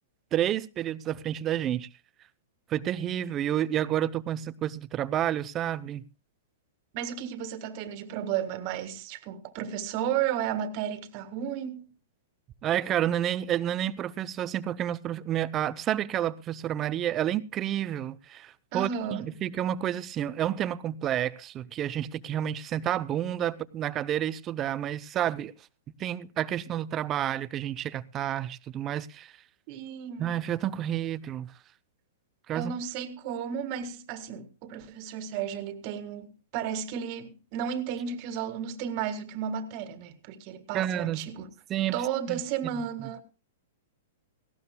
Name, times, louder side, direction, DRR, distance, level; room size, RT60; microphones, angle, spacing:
voice 1, 0.3-1.9 2.7-6.0 12.6-25.5 26.0-29.3 30.2-31.5 32.5-32.8 40.7-41.2 41.7-42.0 42.3-42.4 42.8-42.9, right 11 dB, 30° right, 0.6 m, -30 dB
voice 2, 6.9-11.9 18.7-19.3 29.7-30.4 32.5-41.5 41.9-43.2, right 8 dB, 45° right, 1.7 m, -33 dB
18.5 x 16.0 x 2.2 m
hypercardioid pair, 125°, 0 cm